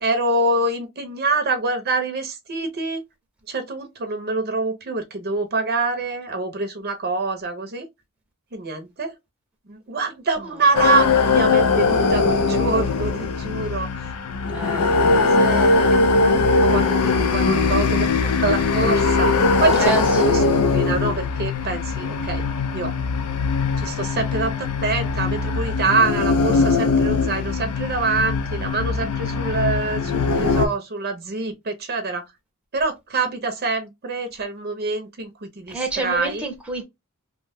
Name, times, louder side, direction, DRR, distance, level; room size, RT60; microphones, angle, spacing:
voice 1, 0.0-3.0 3.5-7.9 8.5-9.1 9.7-13.9 14.8-22.4 22.7-22.9 23.8-32.2 32.7-36.5, right 3 dB, 45° right, 0.6 m, -25 dB
sound 1, 10.8-30.7, left 4 dB, 90° left, 0.5 m, -20 dB
voice 2, 14.5-14.9 19.8-20.5 35.7-36.8, right 2 dB, 5° right, 0.7 m, -28 dB
2.9 x 2.2 x 3.4 m
head